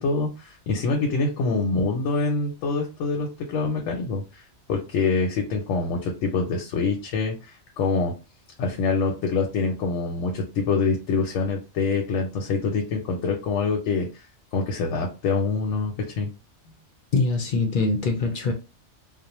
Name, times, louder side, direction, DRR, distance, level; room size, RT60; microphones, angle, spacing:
voice 1, 0.0-4.4 4.7-8.1 8.6-14.2 14.5-16.3, left 4 dB, 90° left, 0.9 m, -25 dB
voice 2, 17.1-18.5, left 3 dB, 60° left, 0.5 m, -23 dB
2.5 x 2.0 x 2.9 m
omnidirectional pair, 1.2 m